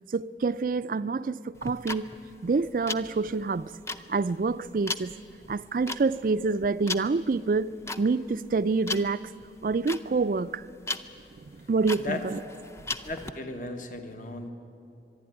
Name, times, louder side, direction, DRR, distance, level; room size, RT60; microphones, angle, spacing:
voice 1, 0.1-2.1 2.4-3.7 4.1-5.1 5.5-9.2 9.6-10.6 11.6-12.4, right 4 dB, 50° right, 0.4 m, -27 dB
sound 1, 1.6-13.3, left 2 dB, 15° left, 0.6 m, -37 dB
voice 2, 13.0-14.5, left 2 dB, 45° left, 1.3 m, -35 dB
24.5 x 11.5 x 9.8 m
head